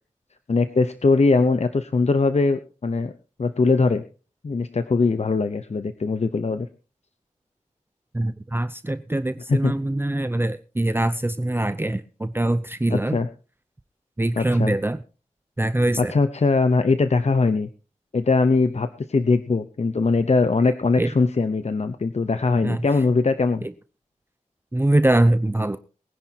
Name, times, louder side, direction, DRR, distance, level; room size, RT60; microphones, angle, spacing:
voice 1, 0.5-3.1 3.4-4.0 4.4-6.7 9.5-9.7 12.9-13.3 14.4-14.7 16.0-17.7 18.1-23.6, left 3 dB, 55° left, 10 dB, 0.8 m, -21 dB
voice 2, 8.1-13.2 14.2-15.0 15.6-16.1 21.0-21.1 22.6-22.9 24.7-25.8, right 1 dB, 15° right, 11 dB, 0.6 m, -23 dB
22.5 x 10.5 x 2.9 m, 0.35 s
wide cardioid pair, 85°, 13 cm